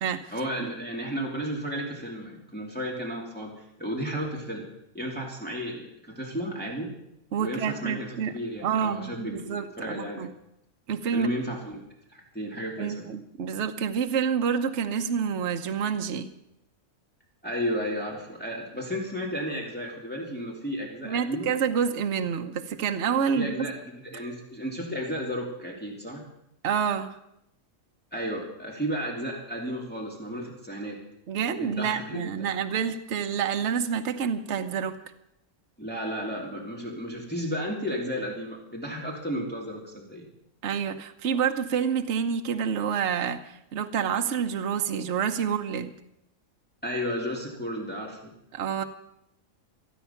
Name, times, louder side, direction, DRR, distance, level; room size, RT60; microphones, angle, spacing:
voice 1, 0.3-4.7 4.9-6.9 7.4-10.3 11.1-11.8 12.1-13.1 17.4-21.5 23.3-26.2 28.1-31.0 31.6-32.5 35.8-40.3 46.8-48.3, equal, 5° left, -2 dB, 2.7 m, -33 dB
voice 2, 7.3-8.3 8.6-10.3 10.9-11.3 12.8-16.3 21.0-23.5 26.6-27.2 31.3-34.9 40.6-45.9 48.5-48.8, right 7 dB, 55° right, 6 dB, 1.2 m, -28 dB
26.5 x 9.2 x 5.8 m, 0.81 s
omnidirectional pair, 1.5 m